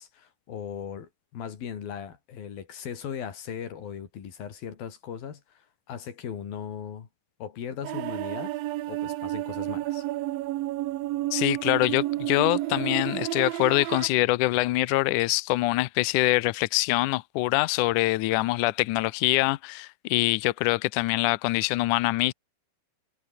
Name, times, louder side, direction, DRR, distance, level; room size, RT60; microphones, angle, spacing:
voice 1, 0.0-7.1 7.4-8.5 8.9-10.1, left 8 dB, 65° left, 4.7 m, -38 dB
sound 1, 7.8-14.1, right 16 dB, 75° right, 2.5 m, -31 dB
voice 2, 11.3-22.3, left 19 dB, 85° left, 1.8 m, -24 dB
omnidirectional pair, 4.5 m